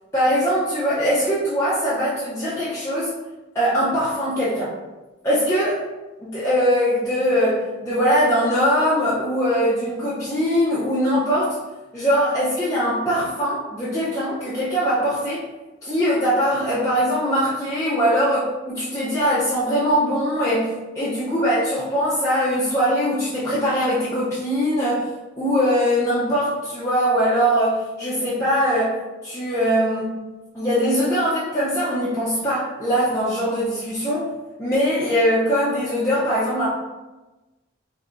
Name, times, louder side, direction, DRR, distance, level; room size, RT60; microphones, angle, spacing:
voice 1, 0.1-3.1 3.5-4.7 5.2-5.9 6.2-11.6 11.9-15.4 15.8-25.1 25.4-30.1 30.5-34.3 34.6-36.7, equal, 15° left, -11 dB, 0.6 m, -21 dB
4.5 x 2.7 x 2.5 m, 1.1 s
head